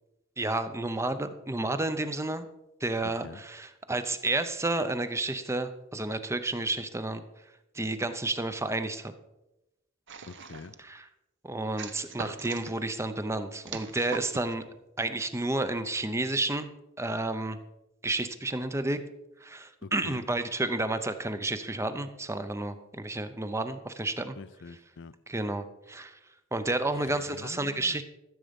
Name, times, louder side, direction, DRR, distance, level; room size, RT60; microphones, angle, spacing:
voice 1, 0.4-2.5 2.8-7.2 7.7-9.1 10.8-11.1 11.4-14.6 15.0-16.7 17.0-17.6 18.0-19.0 19.4-24.4 25.3-26.2 26.5-28.0, right 2 dB, 15° right, 0.7 m, -31 dB
sound 1, 10.1-10.8 11.8-12.8 13.6-14.5, right 5 dB, 60° right, 1.0 m, -41 dB
voice 2, 10.3-10.7 19.8-20.2 24.4-25.1 27.0-28.0, left 4 dB, 65° left, 0.5 m, -45 dB
14.0 x 7.5 x 5.2 m
head